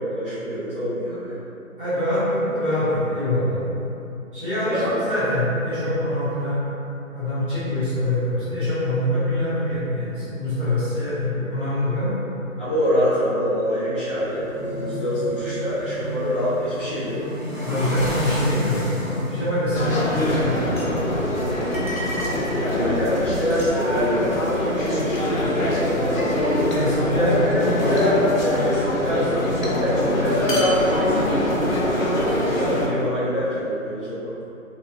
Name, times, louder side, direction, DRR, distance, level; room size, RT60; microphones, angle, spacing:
voice 1, 0.0-1.4 4.6-4.9 12.6-17.2 21.3-21.6 22.7-26.4 27.0-32.0 32.6-34.2, left 1 dB, 20° left, -18 dB, 1.1 m, -25 dB
voice 2, 1.8-3.6 4.3-6.6 7.1-12.2 17.6-20.8 26.7-27.3, left 1 dB, 40° right, -15 dB, 1.0 m, -24 dB
sound 1, 13.1-17.2, right 4 dB, 80° right, 1.5 m, -38 dB
sound 2, 14.1-21.3, left 1 dB, 10° right, 0.9 m, -33 dB
Crowded Bar - Ambient Loop, 19.7-32.9, left 1 dB, 70° left, 0.7 m, -23 dB
3.0 x 2.2 x 2.5 m, 2.9 s
figure-of-eight pair, 170°, 42 cm